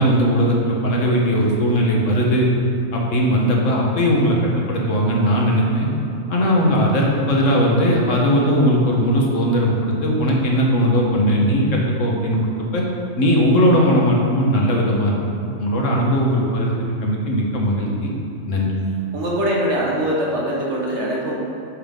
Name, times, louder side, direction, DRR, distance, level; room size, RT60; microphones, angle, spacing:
voice 1, 0.0-2.5 2.9-5.9 6.3-12.8 13.2-15.1 15.6-16.7 17.0-18.1 18.5-18.7, equal, 75° left, -2 dB, 1.5 m, -18 dB
voice 2, 19.1-21.4, equal, 60° right, -3 dB, 1.6 m, -22 dB
8.8 x 6.6 x 3.7 m, 2.6 s
omnidirectional pair, 1.3 m